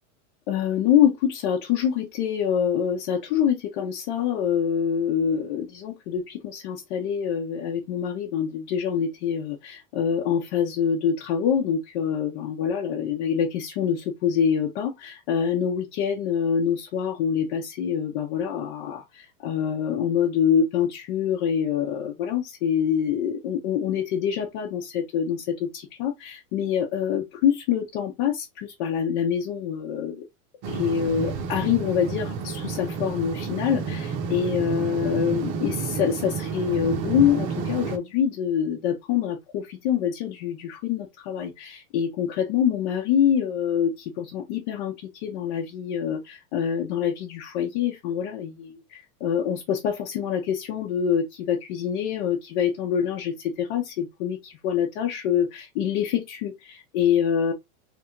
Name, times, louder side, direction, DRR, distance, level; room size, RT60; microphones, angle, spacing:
voice 1, 0.5-30.2 30.7-57.5, left 8 dB, 40° left, 0.8 m, -25 dB
sound 1, 30.6-38.0, right 5 dB, 40° right, 0.9 m, -30 dB
3.4 x 2.5 x 4.3 m
supercardioid pair, 155°, 42 cm